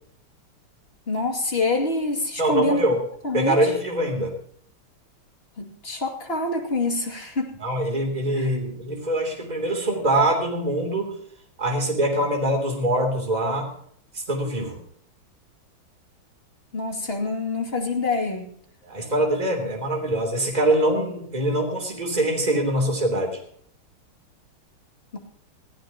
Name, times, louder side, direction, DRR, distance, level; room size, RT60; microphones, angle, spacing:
voice 1, 1.1-2.8 3.2-3.6 5.6-7.6 8.3-8.5 16.7-18.5 25.1-25.2, left 3 dB, 30° left, 2 dB, 2.6 m, -26 dB
voice 2, 2.4-3.0 3.3-4.3 7.6-11.2 11.6-13.7 14.1-14.8 18.8-23.4, right 1 dB, 20° right, 1 dB, 3.2 m, -23 dB
22.5 x 15.0 x 3.0 m, 0.63 s
omnidirectional pair, 2.3 m